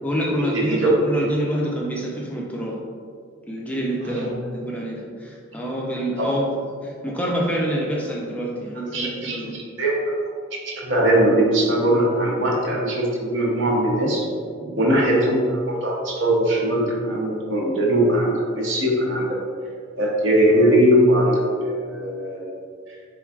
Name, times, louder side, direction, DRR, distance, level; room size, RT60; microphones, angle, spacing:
voice 1, 0.0-2.8 3.5-6.5 6.8-9.6 14.5-15.0, equal, 5° left, -4 dB, 0.4 m, -27 dB
voice 2, 0.5-0.9 4.1-4.3 6.2-6.4 8.9-10.1 10.7-14.2 14.8-19.4 20.0-22.5, right 1 dB, 65° right, -3 dB, 0.8 m, -20 dB
4.5 x 3.7 x 2.4 m, 2.1 s
head